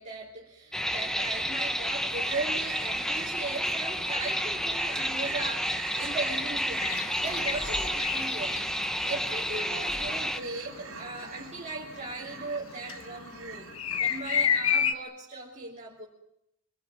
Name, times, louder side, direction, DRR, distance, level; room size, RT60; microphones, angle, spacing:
voice 1, 0.0-6.9 7.2-8.6 9.0-13.7 14.0-16.1, right 3 dB, 35° right, -4 dB, 3.2 m, -38 dB
sound 1, 0.7-10.4, equal, 5° left, 1.1 m, -30 dB
sound 2, 2.2-14.2, right 6 dB, 70° right, 2.4 m, -44 dB
sound 3, 6.8-14.9, left 8 dB, 70° left, 1.2 m, -31 dB
26.0 x 20.0 x 9.6 m, 0.82 s
head